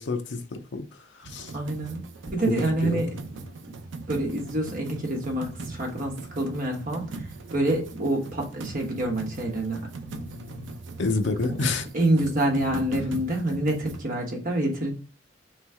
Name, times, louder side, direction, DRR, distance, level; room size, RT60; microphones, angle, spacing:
voice 1, 0.0-1.5 2.5-3.1 11.0-11.9, left 3 dB, 70° left, 5 dB, 0.6 m, -29 dB
sound 1, 1.2-14.0, right 3 dB, 80° right, 0.6 m, -39 dB
voice 2, 1.5-2.0 2.3-3.1 3.6-3.7 4.1-10.7 11.4-11.6 11.9-14.9, right 1 dB, 50° right, 0 dB, 1.2 m, -27 dB
3.3 x 3.1 x 4.6 m, 0.35 s
head